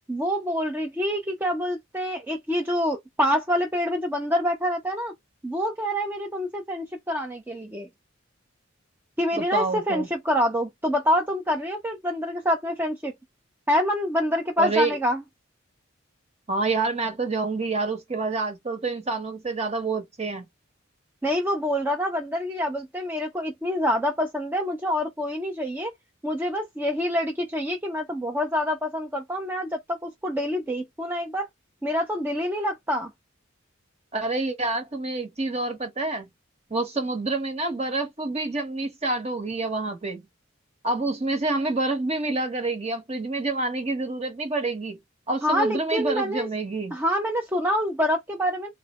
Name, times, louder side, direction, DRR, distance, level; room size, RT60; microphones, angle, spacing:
voice 1, 0.1-5.1 5.4-7.9 9.2-13.1 13.7-15.2 21.2-25.9 26.2-31.5 31.8-33.1 45.4-46.5 46.9-48.7, equal, 10° right, 0.5 m, -26 dB
voice 2, 9.3-10.1 14.6-14.9 16.5-20.5 34.1-36.3 36.7-40.2 40.8-45.0 45.3-47.0, right 3 dB, 30° right, 1.0 m, -27 dB
3.8 x 2.1 x 2.9 m
head